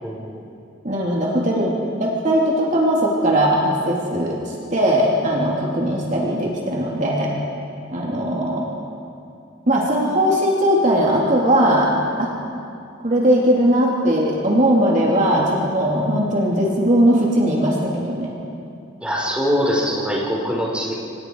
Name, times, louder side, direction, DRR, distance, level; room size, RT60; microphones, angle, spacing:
voice 1, 0.0-0.5 19.0-20.9, equal, 5° right, -3 dB, 4.4 m, -23 dB
voice 2, 0.8-4.4 4.7-7.3 7.9-8.7 9.7-11.9 12.2-12.3 13.0-18.3, equal, 40° right, -3 dB, 3.1 m, -19 dB
30.0 x 26.0 x 4.8 m, 2.6 s
head